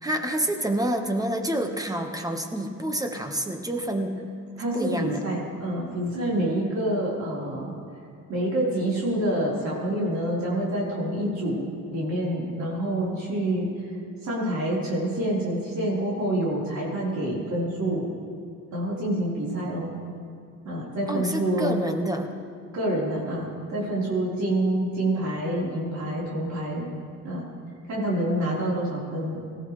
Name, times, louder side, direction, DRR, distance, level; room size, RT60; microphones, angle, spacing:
voice 1, 0.0-4.2 4.7-5.2 21.1-22.3, right 1 dB, 10° right, 5 dB, 1.4 m, -28 dB
voice 2, 4.6-7.7 8.3-11.6 11.9-13.7 14.2-18.1 18.7-19.9 20.6-21.8 22.7-26.9 27.2-27.4 27.9-29.4, right 1 dB, 65° right, -6 dB, 4.3 m, -27 dB
18.5 x 14.5 x 3.3 m, 2.5 s
cardioid pair, 90°, 30 cm